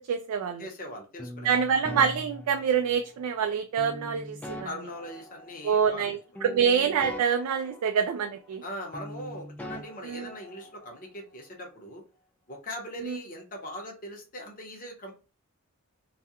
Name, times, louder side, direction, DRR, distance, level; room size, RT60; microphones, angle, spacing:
voice 1, 0.1-0.7 1.4-4.7 5.6-8.6 10.1-10.3 13.0-13.2, right 7 dB, 80° right, 7 dB, 0.3 m, -26 dB
voice 2, 0.6-1.6 4.6-6.4 8.6-12.0 12.5-15.1, left 1 dB, 40° left, 1 dB, 0.8 m, -41 dB
sound 1, 1.2-3.2 3.8-6.1 6.3-8.7 8.9-11.0, left 1 dB, 5° left, 0.3 m, -42 dB
2.4 x 2.2 x 2.7 m, 0.32 s
head